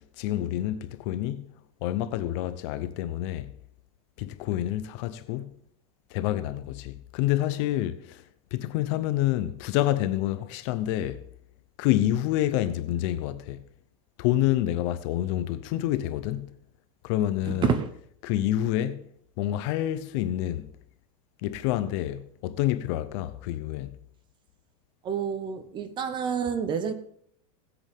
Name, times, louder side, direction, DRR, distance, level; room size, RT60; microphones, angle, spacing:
voice 1, 0.0-1.5 1.8-3.5 4.2-5.6 6.1-8.2 8.5-11.2 11.8-13.6 14.2-16.5 17.0-17.8 18.2-19.1 19.4-20.7 21.4-24.0, left 13 dB, 50° left, 0.8 m, -28 dB
voice 2, 17.5-17.9 25.0-26.9, right 7 dB, 25° right, 0.8 m, -28 dB
18.5 x 8.1 x 3.6 m
supercardioid pair, 155°, 19 cm